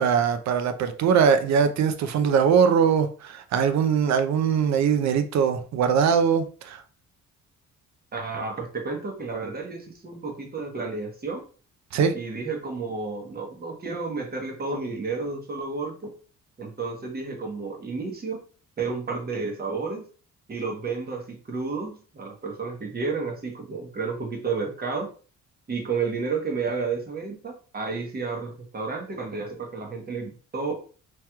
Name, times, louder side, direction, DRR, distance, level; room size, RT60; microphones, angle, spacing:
voice 1, 0.0-6.8 11.9-12.1, right 7 dB, 65° right, 0.5 m, -21 dB
voice 2, 8.1-11.4 12.1-16.1 16.6-18.4 18.8-20.0 20.5-25.1 25.7-30.7, right 4 dB, 30° right, 1.0 m, -31 dB
3.2 x 3.0 x 2.2 m
cardioid pair, 90°, 30 cm